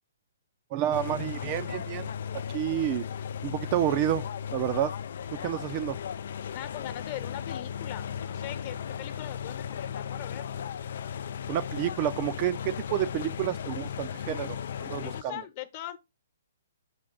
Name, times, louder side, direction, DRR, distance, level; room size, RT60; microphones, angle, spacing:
voice 1, 0.7-2.1 2.5-3.1 3.4-4.9 5.3-6.0 11.5-15.4, right 12 dB, 35° right, 0.6 m, -30 dB
sound 1, 0.9-15.2, left 8 dB, 55° left, 0.4 m, -36 dB
voice 2, 6.5-10.5 15.0-16.0, left 13 dB, 40° left, 1.1 m, -40 dB
8.8 x 3.8 x 3.8 m
figure-of-eight pair, 125°, 0 cm